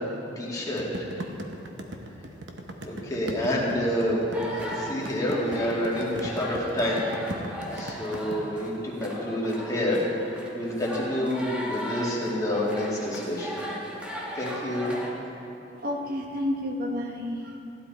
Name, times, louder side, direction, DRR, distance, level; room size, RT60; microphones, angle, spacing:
voice 1, 0.4-0.9 2.8-4.2 4.6-7.1 7.7-10.0 10.5-13.6 14.4-14.9, left 1 dB, 20° left, -6 dB, 2.3 m, -28 dB
sound 1, 0.8-8.4, right 1 dB, 70° right, 1.0 m, -37 dB
sound 2, 4.3-15.1, equal, 5° right, 1.6 m, -37 dB
voice 2, 15.7-17.6, left 1 dB, 55° right, 1 dB, 1.3 m, -30 dB
15.5 x 10.5 x 4.2 m, 2.8 s
head